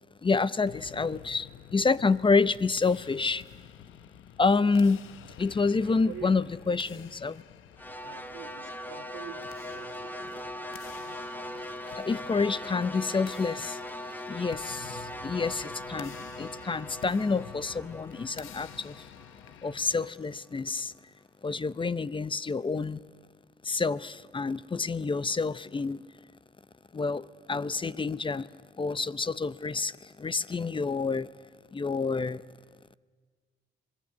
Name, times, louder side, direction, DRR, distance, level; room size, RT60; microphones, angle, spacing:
voice 1, 0.2-3.4 4.4-5.0 5.4-7.4 11.9-13.8 14.3-19.1 19.6-20.9 21.4-23.0 23.6-26.0 26.9-28.5 28.8-31.3 31.7-32.4, left 4 dB, 25° left, 18 dB, 0.7 m, -28 dB
sound 1, 0.6-20.1, left 10 dB, 80° left, 1.0 m, -50 dB
voice 2, 4.9-5.4 5.8-7.1 8.0-10.4 11.7-11.8 18.3-18.4 21.5-21.6 30.5-30.6, right 9 dB, 75° right, 1 dB, 1.7 m, -48 dB
sound 2, 7.8-20.0, left 1 dB, 10° left, 1.7 m, -40 dB
26.5 x 19.5 x 9.6 m, 1.5 s
cardioid pair, 90°, 20 cm